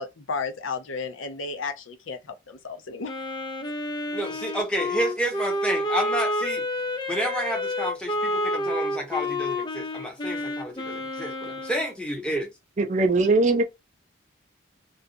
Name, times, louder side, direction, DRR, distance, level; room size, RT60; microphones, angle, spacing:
voice 1, 0.0-2.2 2.5-3.1, left 4 dB, 85° left, 0.6 m, -33 dB
Wind instrument woodwind instrument, 3.1-11.9, left 1 dB, 20° left, 0.4 m, -29 dB
voice 2, 4.1-6.6 7.1-12.5, equal, 5° left, 0.8 m, -30 dB
voice 3, 12.8-13.6, right 3 dB, 40° right, 0.5 m, -20 dB
2.5 x 2.3 x 2.5 m
head